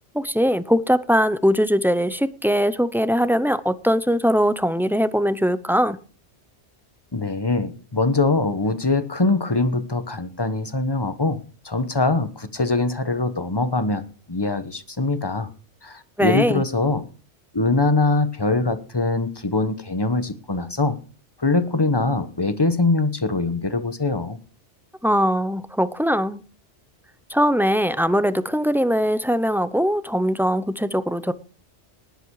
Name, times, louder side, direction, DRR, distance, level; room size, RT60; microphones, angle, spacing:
voice 1, 0.1-6.0 16.2-16.6 25.0-26.4 27.3-31.3, equal, 5° right, 0.4 m, -21 dB
voice 2, 7.1-11.4 11.6-14.0 14.3-15.5 15.8-17.0 17.5-21.0 21.4-24.4, left 3 dB, 20° left, 1.2 m, -22 dB
19.0 x 8.2 x 4.8 m
omnidirectional pair, 1.2 m